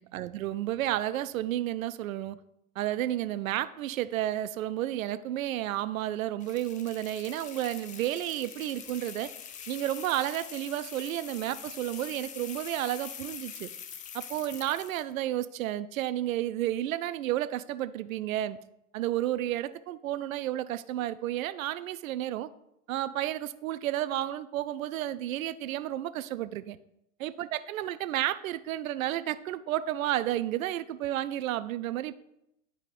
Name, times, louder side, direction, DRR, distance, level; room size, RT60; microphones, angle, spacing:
voice 1, 0.0-2.4 2.8-9.3 9.7-13.7 14.1-18.6 18.9-22.5 22.9-26.8 27.2-32.1, right 13 dB, 70° right, 15 dB, 0.6 m, -31 dB
sound 1, 6.4-15.1, left 8 dB, 20° left, 0.4 m, -44 dB
10.5 x 5.1 x 2.5 m, 0.81 s
hypercardioid pair, 100°, 42 cm